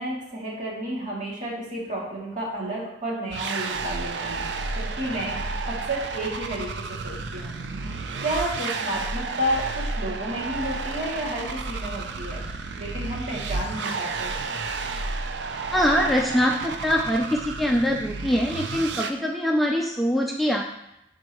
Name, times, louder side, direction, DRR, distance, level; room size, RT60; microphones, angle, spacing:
voice 1, 0.0-4.4 4.7-5.4 5.7-7.5 8.2-12.4 12.8-14.4, right 1 dB, 45° right, -5 dB, 2.5 m, -31 dB
sound 1, 3.3-19.1, right 3 dB, 75° right, 0.5 m, -31 dB
voice 2, 15.7-20.6, equal, ahead, -1 dB, 0.5 m, -23 dB
11.5 x 4.6 x 3.1 m, 0.85 s
head